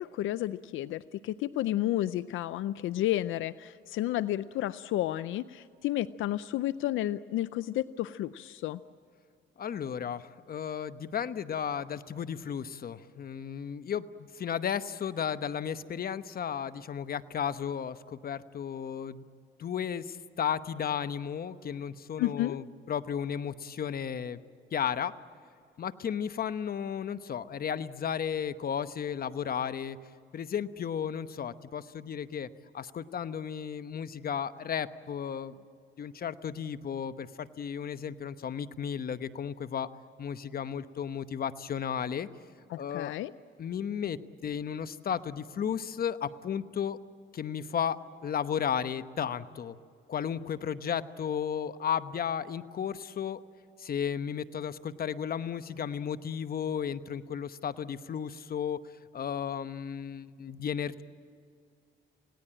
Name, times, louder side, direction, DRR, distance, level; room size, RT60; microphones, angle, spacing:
voice 1, 0.0-8.8 22.2-22.6 42.7-43.3, left 14 dB, 80° left, 16 dB, 0.5 m, -31 dB
voice 2, 9.6-19.3 19.6-24.4 24.7-25.1 25.8-30.0 30.3-35.6 36.0-39.9 40.2-42.3 42.8-43.1 43.6-47.0 47.3-49.8 50.1-53.4 53.8-58.8 59.1-61.0, left 8 dB, 50° left, 13 dB, 1.0 m, -34 dB
28.5 x 18.5 x 8.8 m, 2.4 s
cardioid pair, 90°, 20 cm